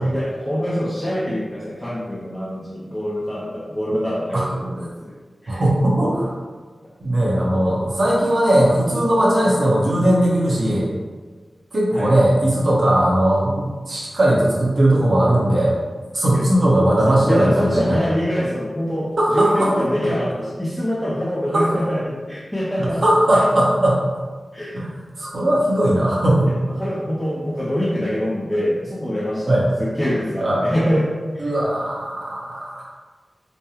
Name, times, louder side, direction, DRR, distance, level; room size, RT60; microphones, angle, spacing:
voice 1, 0.1-5.1 5.4-5.6 7.5-7.8 11.9-12.1 16.3-16.4 17.1-23.0 23.3-23.4 24.5-24.8 26.8-31.1 31.3-31.5, equal, 10° left, -8 dB, 0.6 m, -24 dB
voice 2, 5.5-6.4 7.0-10.9 11.7-15.8 16.1-18.0 19.2-19.7 20.0-20.1 21.5-21.7 22.8-24.0 24.7-24.9 25.2-26.7 29.5-29.7 30.4-30.6 31.4-32.8, right 1 dB, 55° right, -5 dB, 1.0 m, -18 dB
5.3 x 2.2 x 2.9 m, 1.4 s
wide cardioid pair, 105°, 0 cm